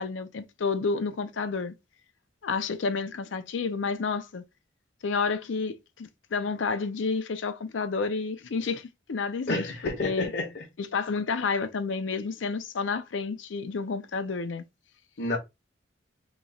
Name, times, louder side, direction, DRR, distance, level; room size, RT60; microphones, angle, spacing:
voice 1, 0.0-1.7 2.4-4.4 5.0-10.3 10.8-14.6, left 4 dB, 85° left, 0.5 m, -30 dB
voice 2, 9.5-10.6 15.2-15.4, left 2 dB, 60° left, 0.9 m, -30 dB
3.0 x 2.3 x 3.9 m
head